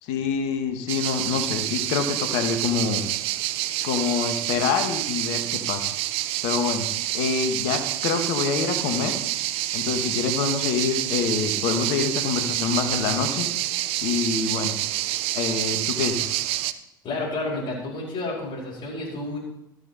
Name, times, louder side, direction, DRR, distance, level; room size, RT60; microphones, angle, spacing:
voice 1, 0.0-3.1 3.8-5.9 6.4-6.9 7.1-9.1 9.7-13.4 14.0-14.8 15.3-16.3, left 6 dB, 65° left, 6 dB, 1.7 m, -26 dB
sound 1, 0.9-16.7, right 15 dB, 60° right, 0.6 m, -28 dB
voice 2, 17.0-19.4, left 2 dB, 45° left, -5 dB, 4.6 m, -30 dB
13.5 x 8.9 x 4.2 m, 0.84 s
hypercardioid pair, 70°, 11 cm